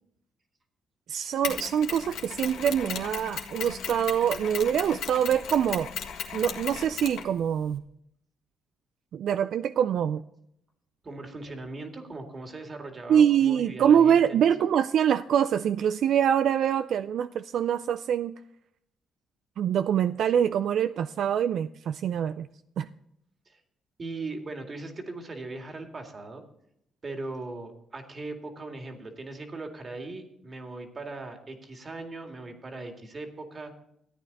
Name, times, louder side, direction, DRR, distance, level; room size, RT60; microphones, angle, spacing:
voice 1, 1.1-5.9 6.3-7.8 9.1-10.2 13.1-18.3 19.6-22.5 22.8-22.9, right 9 dB, 70° right, 12 dB, 0.3 m, -24 dB
Mechanisms, 1.4-7.8, left 7 dB, 80° left, 1.7 m, -36 dB
voice 2, 11.0-14.5 23.5-23.6 24.0-26.5 27.0-33.7, right 2 dB, 35° right, 4 dB, 2.2 m, -39 dB
14.0 x 9.2 x 4.1 m, 0.75 s
cardioid pair, 90°, 0 cm